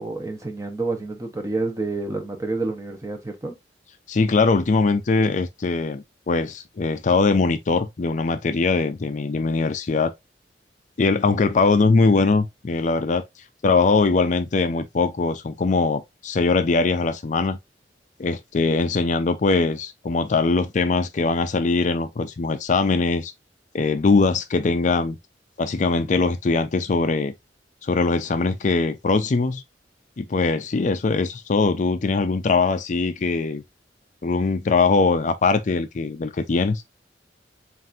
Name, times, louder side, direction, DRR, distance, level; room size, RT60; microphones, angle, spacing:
voice 1, 0.0-3.6, right 3 dB, 20° right, 0.9 m, -28 dB
voice 2, 4.1-10.1 11.0-13.2 13.6-17.6 18.2-23.3 23.7-25.2 25.6-27.3 27.8-29.6 30.2-33.6 34.2-36.8, left 3 dB, 45° left, 0.4 m, -21 dB
7.5 x 2.6 x 2.6 m
head